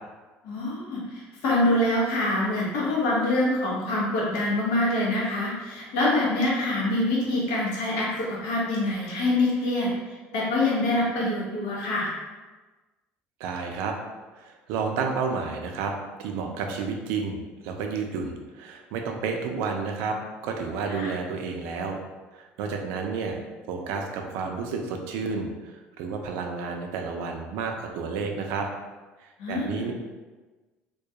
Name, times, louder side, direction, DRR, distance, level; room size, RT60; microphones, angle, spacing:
voice 1, 0.4-9.9 10.3-12.1 20.9-21.1 29.4-29.9, left 1 dB, 75° left, -5 dB, 0.8 m, -25 dB
voice 2, 13.4-13.9 14.4-15.9 16.2-20.2 20.4-22.0 22.3-23.4 23.7-28.7 29.2-29.9, right 5 dB, 80° right, 3 dB, 0.4 m, -31 dB
2.2 x 2.2 x 2.7 m, 1.2 s
cardioid pair, 175°, 4 cm